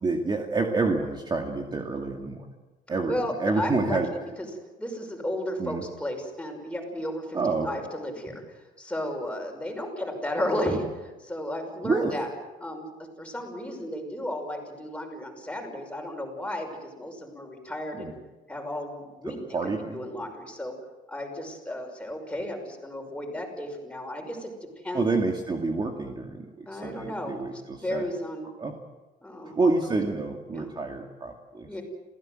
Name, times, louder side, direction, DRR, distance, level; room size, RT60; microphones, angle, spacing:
voice 1, 0.0-2.4 2.9-4.1 5.6-5.8 7.3-7.7 11.8-12.2 17.9-18.1 19.5-20.0 24.9-28.1 28.6-28.7 29.6-31.7, right 3 dB, 25° right, 2 dB, 2.3 m, -28 dB
voice 2, 3.1-4.5 4.8-7.4 7.6-8.4 8.8-12.3 12.6-12.9 13.2-18.1 18.5-19.4 19.6-20.7 21.1-24.5 24.8-25.1 26.7-28.5 29.2-29.6 29.9-30.0 30.5-30.7 31.6-31.8, left 1 dB, 5° left, 2 dB, 5.9 m, -33 dB
28.0 x 16.5 x 7.9 m, 1.2 s
cardioid pair, 110°, 17 cm